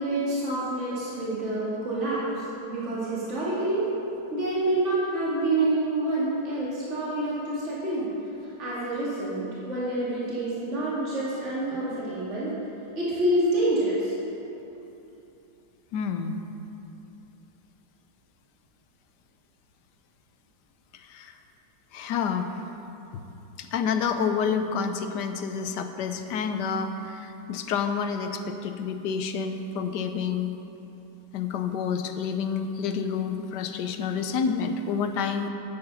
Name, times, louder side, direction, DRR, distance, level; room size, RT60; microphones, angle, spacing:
voice 1, 0.0-2.2 2.7-3.8 4.3-8.1 8.6-12.5 12.9-14.1, right 1 dB, 40° right, -9 dB, 2.8 m, -27 dB
voice 2, 15.9-16.4 21.1-21.3 21.9-22.5 23.6-30.5 31.3-35.5, left 6 dB, 70° left, 7 dB, 1.2 m, -29 dB
11.5 x 8.9 x 5.5 m, 3.0 s
omnidirectional pair, 2.0 m